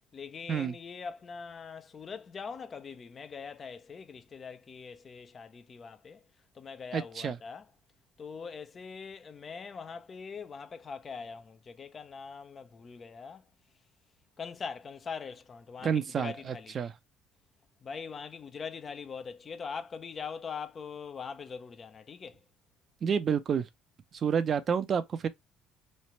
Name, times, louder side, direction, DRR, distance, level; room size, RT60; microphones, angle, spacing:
voice 1, 0.1-6.2 6.5-7.6 8.2-13.4 14.4-16.8 17.8-22.4, left 5 dB, 40° left, 0.5 m, -42 dB
voice 2, 6.9-7.4 15.8-16.9 23.0-23.7 24.1-25.3, right 7 dB, 45° right, 0.5 m, -29 dB
3.2 x 2.4 x 4.2 m
supercardioid pair, 75°, 0 cm